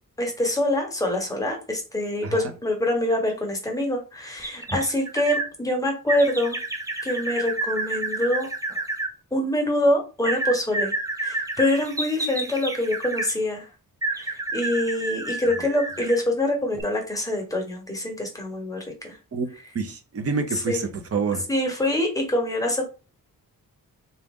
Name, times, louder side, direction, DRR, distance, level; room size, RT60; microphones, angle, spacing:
voice 1, 0.2-6.6 7.0-8.5 9.3-10.9 11.2-13.7 14.1-19.2 20.5-20.8 21.5-22.8, left 1 dB, 10° left, 1.0 m, -25 dB
sound 1, 4.4-5.5 6.1-9.1 10.2-13.3 14.0-16.3 16.7-16.8, right 2 dB, 10° right, 0.4 m, -30 dB
voice 2, 19.7-21.4, right 4 dB, 45° right, 0.7 m, -27 dB
4.0 x 2.5 x 3.6 m
wide cardioid pair, 170°, 35 cm